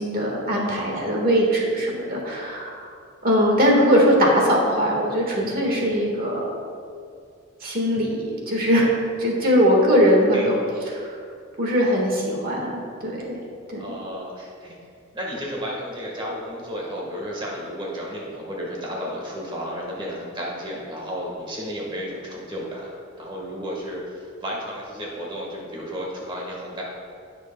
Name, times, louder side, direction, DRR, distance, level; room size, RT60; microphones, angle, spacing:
voice 1, 0.0-2.9 3.2-6.4 7.6-8.9 9.2-10.6 10.9-11.1 11.6-13.2 13.7-13.9, equal, 45° right, -1 dB, 1.6 m, -20 dB
voice 2, 10.2-10.5 13.8-14.8 15.1-26.8, equal, 25° right, -3 dB, 1.5 m, -33 dB
16.0 x 6.2 x 2.3 m, 2.3 s
head